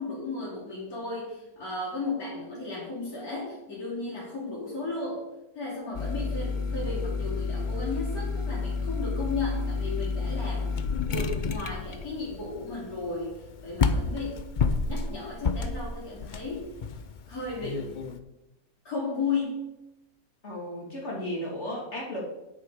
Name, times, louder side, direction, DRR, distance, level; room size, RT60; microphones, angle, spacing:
voice 1, 0.0-5.2 5.6-10.7 11.0-14.4 14.8-16.7 17.3-18.0 18.8-19.7, left 3 dB, 60° left, -8 dB, 4.0 m, -34 dB
sound 1, 5.9-18.2, left 4 dB, 85° left, 0.4 m, -31 dB
voice 2, 20.4-22.3, equal, 40° left, -2 dB, 3.2 m, -34 dB
10.0 x 8.4 x 5.0 m, 0.94 s
omnidirectional pair, 1.8 m